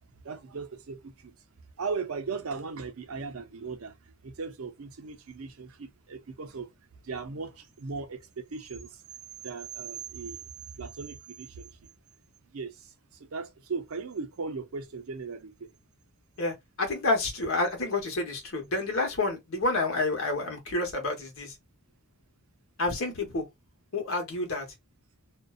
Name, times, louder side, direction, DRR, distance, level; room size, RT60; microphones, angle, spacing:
voice 1, 0.2-1.3 1.8-6.7 7.0-9.0 9.4-10.5 10.7-11.8 12.5-15.7, right 4 dB, 75° right, 0.5 m, -38 dB
voice 2, 16.4-21.5 22.8-23.4 23.9-24.7, left 2 dB, 65° left, 1.0 m, -29 dB
2.5 x 2.2 x 2.3 m
head